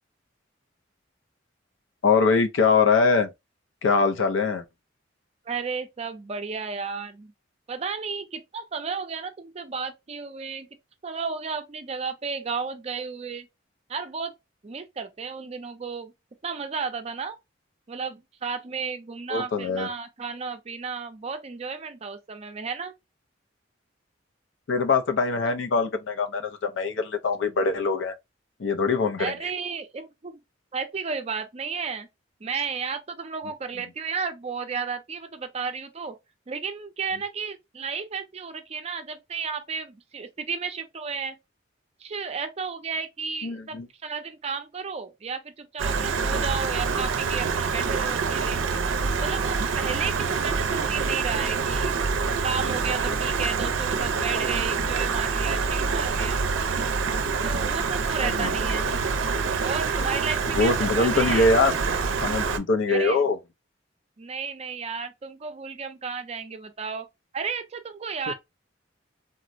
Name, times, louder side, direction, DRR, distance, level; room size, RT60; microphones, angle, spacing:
voice 1, 2.0-3.3 3.8-4.6 19.3-19.9 24.7-28.1 28.6-29.3 43.4-43.9 58.2-58.8 60.6-61.7 62.2-63.4 68.3-68.4, left 4 dB, 75° left, 0.5 m, -23 dB
voice 2, 5.5-7.3 7.7-10.7 11.0-13.5 13.9-14.3 14.6-16.1 16.4-17.4 17.9-22.9 29.2-30.4 30.7-32.1 32.4-36.1 36.5-41.4 42.0-48.6 49.0-52.0 52.4-56.4 57.4-58.8 59.6-61.5 62.9-63.2 64.2-67.1 67.3-68.3, right 5 dB, 35° right, 0.4 m, -33 dB
Stream, 45.8-62.6, right 5 dB, 90° right, 0.5 m, -26 dB
3.6 x 2.1 x 2.5 m
head